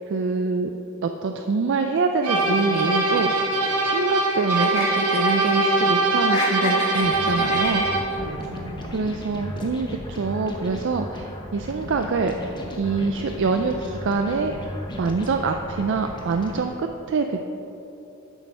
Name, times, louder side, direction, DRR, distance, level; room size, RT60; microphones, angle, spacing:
voice 1, 0.1-0.7 1.0-3.6 3.8-7.9 8.9-14.7 15.0-17.5, right 4 dB, 55° right, 5 dB, 0.4 m, -25 dB
sound 1, 2.2-8.2, right 2 dB, 80° right, 1.4 m, -22 dB
sound 2, 2.3-4.2 4.5-5.9 6.2-8.2, left 2 dB, 80° left, 1.6 m, -31 dB
voice 2, 6.7-8.9, right 1 dB, 30° right, -4 dB, 2.1 m, -39 dB
sound 3, 7.0-16.6, left 1 dB, 20° left, 0.8 m, -36 dB
7.8 x 6.4 x 5.5 m, 3.0 s
head